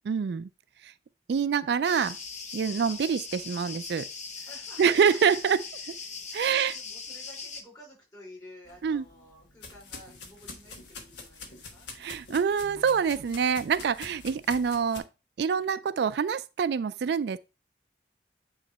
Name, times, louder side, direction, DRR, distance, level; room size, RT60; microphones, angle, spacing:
voice 1, 0.1-0.5 0.8-0.9 1.3-2.2 2.5-4.1 4.8-5.6 6.3-6.7 8.8-9.0 12.0-15.0 15.4-17.4, right 6 dB, 65° right, 0.3 m, -26 dB
sound 1, 1.8-7.6, left 5 dB, 40° left, 0.9 m, -40 dB
voice 2, 4.3-5.2 5.6-6.2 6.5-11.9, left 1 dB, 20° left, 4.6 m, -52 dB
sound 2, 8.6-15.0, left 3 dB, 85° left, 1.4 m, -46 dB
9.2 x 3.2 x 4.1 m
head